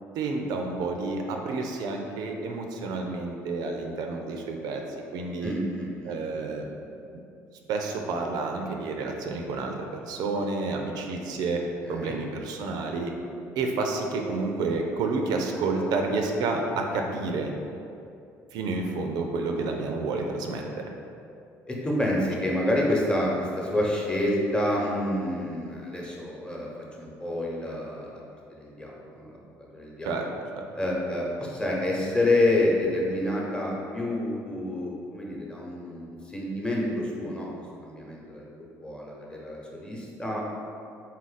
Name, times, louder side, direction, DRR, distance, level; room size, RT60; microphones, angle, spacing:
voice 1, 0.1-4.8 5.1-5.5 6.0-6.8 7.7-11.6 11.9-13.1 13.6-17.5 18.5-20.9 30.0-30.7, right 3 dB, 70° right, 2 dB, 0.4 m, -30 dB
voice 2, 5.4-6.2 11.9-12.2 19.6-19.7 20.1-20.3 21.7-26.7 27.0-28.2 28.5-30.1 30.7-37.5 37.8-38.5 38.8-40.5, left 1 dB, 10° left, -3 dB, 0.9 m, -28 dB
3.9 x 2.5 x 4.0 m, 2.6 s
supercardioid pair, 75°, 7 cm